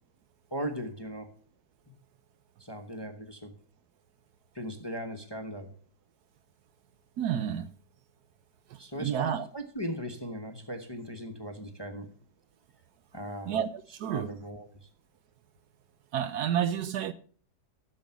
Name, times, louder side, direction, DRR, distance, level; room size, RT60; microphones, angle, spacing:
voice 1, 0.5-1.3 2.6-3.6 4.5-5.7 8.8-12.1 13.1-13.6 14.1-14.9, equal, 20° left, 0.9 m, -38 dB
voice 2, 7.2-7.7 9.0-9.5 13.5-14.4 16.1-17.1, right 9 dB, 70° right, 1.2 m, -30 dB
11.0 x 6.9 x 5.8 m
omnidirectional pair, 1.9 m